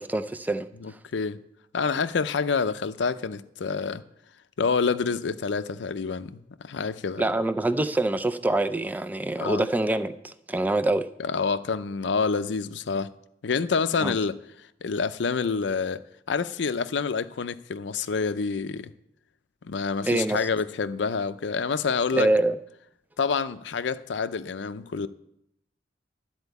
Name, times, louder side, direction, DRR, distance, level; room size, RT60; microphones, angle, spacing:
voice 1, 0.0-0.7 7.2-11.1 14.0-14.1 20.0-20.5 22.1-22.6, right 2 dB, 10° right, 0.4 m, -25 dB
voice 2, 0.8-1.4 1.7-4.0 4.6-6.4 6.6-7.2 9.4-9.7 11.2-13.1 13.4-14.4 14.8-16.0 16.3-18.9 19.6-22.3 23.2-25.1, left 5 dB, 70° left, 0.5 m, -27 dB
12.5 x 4.4 x 8.1 m
head